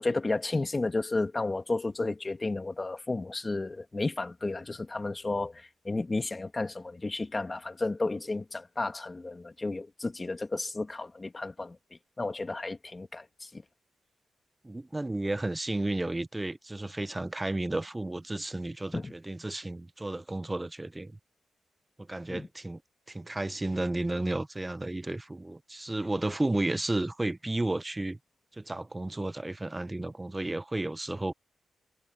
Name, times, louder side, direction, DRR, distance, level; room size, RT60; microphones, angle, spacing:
voice 1, 0.0-11.8 12.2-13.6 18.9-19.1 22.3-22.5, left 3 dB, 25° left, 2.1 m, -32 dB
voice 2, 14.6-21.2 22.1-22.8 23.1-28.2 28.6-31.3, right 2 dB, 15° right, 0.6 m, -32 dB
cardioid pair, 80°, 0 cm